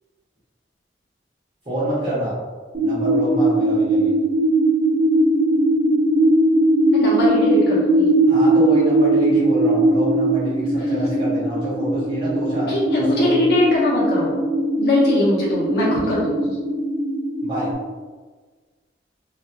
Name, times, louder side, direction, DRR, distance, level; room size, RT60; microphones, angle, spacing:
voice 1, 1.6-2.3 2.8-4.1 8.3-12.7 13.0-13.4 17.4-17.7, equal, 30° right, -11 dB, 1.2 m, -27 dB
sound 1, 2.7-17.7, right 1 dB, 50° right, 1.2 m, -19 dB
voice 2, 6.9-8.1 12.7-14.3 14.8-16.6, left 2 dB, 65° left, -6 dB, 1.1 m, -21 dB
3.2 x 2.9 x 2.3 m, 1.4 s
head